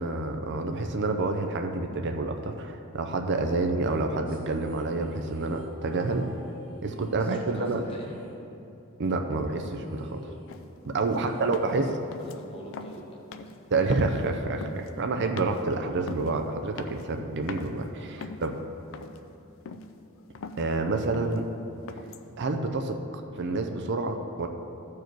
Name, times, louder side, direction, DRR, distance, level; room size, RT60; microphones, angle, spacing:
voice 1, 0.0-6.3 6.8-7.8 9.0-10.2 10.8-11.9 13.7-18.6 20.6-21.4 22.4-23.0 23.3-24.5, right 3 dB, 55° right, 5 dB, 0.6 m, -28 dB
sound 1, 4.3-8.9 9.2-9.3 9.6-12.2, right 1 dB, 80° right, 1.5 m, -51 dB
voice 2, 7.2-8.2 11.1-13.2 13.4-13.6 18.2-18.4, equal, 25° left, -1 dB, 1.3 m, -45 dB
sound 2, 10.5-10.7 11.0-11.2 11.5-11.9 12.1-12.4 12.7-13.0 13.3-13.6 13.9-14.3 14.6-14.9 15.4-15.7 16.1-16.3 16.8-17.2 17.5-17.7 18.2-18.6 18.9-19.3 19.7-19.9 20.2-20.7 21.1-21.4 21.9-22.3, left 4 dB, 65° left, 0.5 m, -42 dB
14.0 x 4.7 x 4.6 m, 2.8 s
head